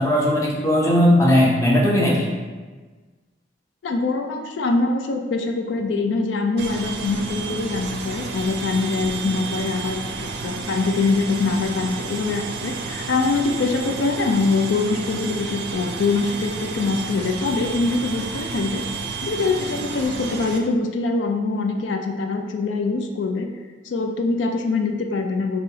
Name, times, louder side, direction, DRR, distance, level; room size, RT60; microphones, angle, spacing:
voice 1, 0.0-2.3, equal, 15° left, -3 dB, 0.6 m, -17 dB
voice 2, 3.8-18.8 19.2-23.5 23.8-25.6, left 3 dB, 80° left, 3 dB, 0.4 m, -23 dB
sound 1, 6.6-20.6, right 4 dB, 60° right, 0.4 m, -31 dB
3.1 x 3.0 x 4.5 m, 1.3 s
head